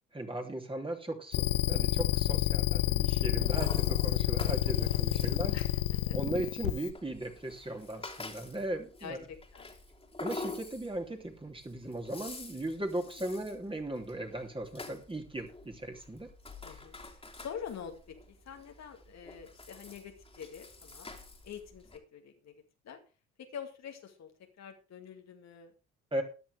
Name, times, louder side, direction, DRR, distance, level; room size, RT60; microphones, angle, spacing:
voice 1, 0.1-5.6 6.1-9.2 10.2-16.3 16.7-16.8 26.1-26.2, right 1 dB, 15° right, 2 dB, 3.2 m, -37 dB
sound 1, 1.3-6.9, left 14 dB, 70° left, 0.9 m, -29 dB
Rattle (instrument), 3.0-22.0, left 3 dB, 15° left, 3.2 m, -48 dB
voice 2, 4.8-5.7 6.1-6.2 7.6-7.8 9.0-9.7 16.6-17.0 17.3-21.1 21.4-21.9 22.1-22.6 22.8-23.0 23.5-24.3 24.6-25.7, left 7 dB, 50° left, 5 dB, 2.3 m, -46 dB
14.0 x 10.5 x 3.5 m, 0.33 s
hypercardioid pair, 55°, 35 cm